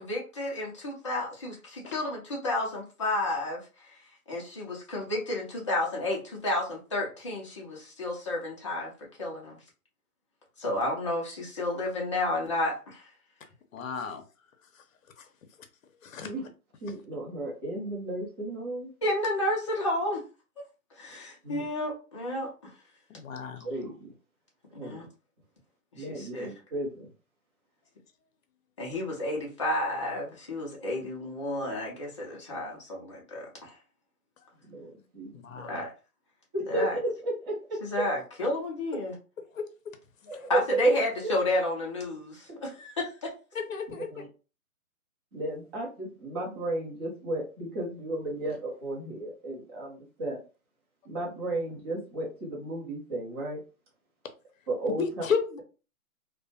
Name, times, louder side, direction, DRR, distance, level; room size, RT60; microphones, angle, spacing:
voice 1, 0.0-4.0 4.3-8.9 9.2-9.6 10.6-13.1 19.0-20.2 21.0-22.5 24.8-25.1 25.9-26.5 28.8-33.7 35.6-35.9 36.7-36.9 37.9-39.1 40.5-43.3, left 1 dB, 20° left, -3 dB, 0.4 m, -31 dB
voice 2, 13.7-14.2 15.2-15.3 16.0-16.3 23.1-23.7 35.3-35.9 39.5-39.7 43.5-44.2 55.0-55.6, left 6 dB, 65° left, 7 dB, 0.7 m, -33 dB
voice 3, 16.8-18.9 21.4-21.6 23.6-24.1 24.8-25.1 26.0-27.1 34.6-35.4 36.5-38.1 40.3-40.8 41.2-41.3 42.5-42.6 44.1-44.3 45.3-50.4 51.0-53.6 54.7-55.0, right 2 dB, 20° right, -4 dB, 0.7 m, -34 dB
2.4 x 2.1 x 2.6 m, 0.33 s
hypercardioid pair, 145°, 44 cm